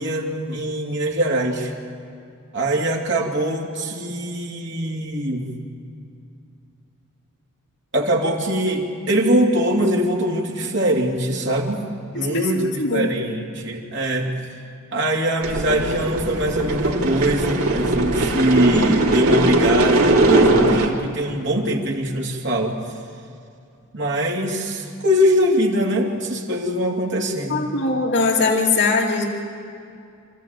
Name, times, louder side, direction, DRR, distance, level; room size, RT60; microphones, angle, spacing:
voice 1, 0.0-1.7 2.5-5.6 7.9-11.8 12.1-14.3 14.9-22.7 23.9-27.6, equal, 55° right, 0 dB, 2.9 m, -22 dB
voice 2, 12.3-13.4 27.5-29.2, left 3 dB, 55° left, -2 dB, 2.6 m, -21 dB
sound 1, 15.4-20.9, right 2 dB, 85° right, 2.9 m, -19 dB
27.0 x 14.0 x 9.3 m, 2.4 s
head